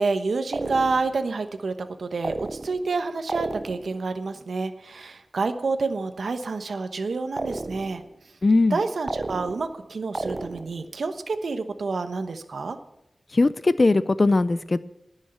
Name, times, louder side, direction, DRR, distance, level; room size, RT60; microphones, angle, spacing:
voice 1, 0.0-8.0 8.7-12.8, right 4 dB, 85° right, 8 dB, 1.0 m, -28 dB
sound 1, 0.5-1.2 2.2-3.0 3.3-4.0 7.4-8.1 9.1-9.8 10.1-10.9, right 2 dB, 35° right, 0.4 m, -33 dB
voice 2, 8.4-8.8 13.3-14.8, left 3 dB, 40° left, 15 dB, 0.4 m, -19 dB
19.0 x 6.4 x 7.7 m, 0.85 s
wide cardioid pair, 105°, 0 cm